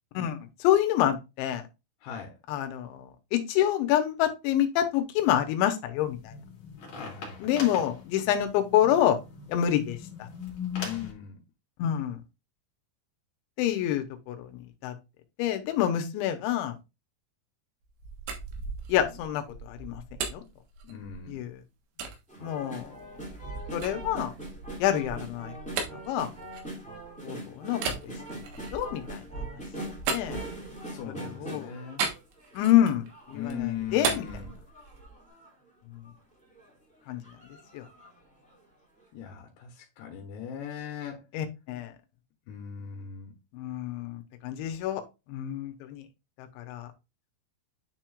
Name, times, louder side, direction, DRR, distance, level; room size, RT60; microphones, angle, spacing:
voice 1, 0.1-1.6 2.5-6.3 7.4-9.2 9.5-10.3 11.8-12.2 13.6-14.5 14.8-14.9 15.4-16.8 18.9-20.0 20.3-20.4 21.3-21.5 22.4-23.0 23.7-24.3 24.8-25.5 26.0-26.3 27.2-28.1 28.7-29.5 30.1-30.4 31.2-31.7 32.6-34.2 37.1-37.2 37.7-37.8 41.3-41.9 43.5-45.0 45.3-46.0 46.4-46.9, left 11 dB, 90° left, 3.2 m, -27 dB
voice 2, 2.0-2.4 7.0-7.5 10.8-11.4 20.8-21.4 30.8-32.1 33.3-34.6 39.1-41.2 42.5-43.3, left 8 dB, 75° left, 3.1 m, -39 dB
sound 1, 6.0-11.1, left 6 dB, 45° left, 2.7 m, -40 dB
sound 2, 17.8-21.4 22.0-22.2 22.7-27.2 27.7-31.0 32.0-33.1 33.4-35.2, right 5 dB, 90° right, 3.7 m, -36 dB
sound 3, 22.3-32.6 33.1-35.5 36.0-36.1 36.4-36.7 37.2-38.2 38.5-38.6, right 1 dB, 5° left, 1.6 m, -42 dB
9.6 x 4.5 x 2.4 m
omnidirectional pair, 5.2 m